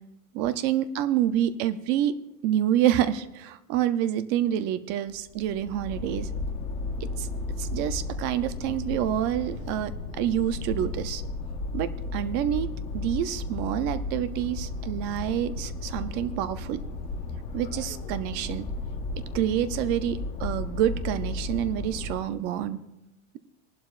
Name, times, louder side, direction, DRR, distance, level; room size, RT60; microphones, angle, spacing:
voice 1, 0.3-2.1 2.4-6.3 7.2-7.3 7.6-11.2 11.7-12.7 12.9-16.8 17.5-18.6 19.3-22.8, right 11 dB, 30° right, 13 dB, 0.4 m, -27 dB
sound 1, 5.1-22.4, left 3 dB, 20° left, 0.6 m, -34 dB
25.0 x 11.5 x 2.4 m, 0.93 s
cardioid pair, 180°, 36 cm